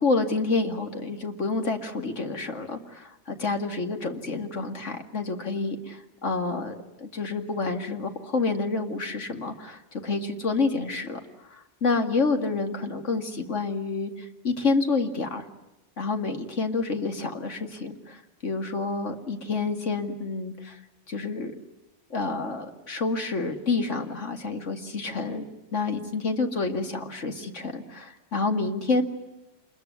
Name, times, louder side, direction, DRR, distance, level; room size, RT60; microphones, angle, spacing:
voice 1, 0.0-11.2 11.5-15.4 16.0-20.8 21.1-21.5 22.1-25.4 25.7-29.0, left 3 dB, 85° left, 5 dB, 2.5 m, -28 dB
27.0 x 21.5 x 9.5 m, 1.0 s
omnidirectional pair, 1.2 m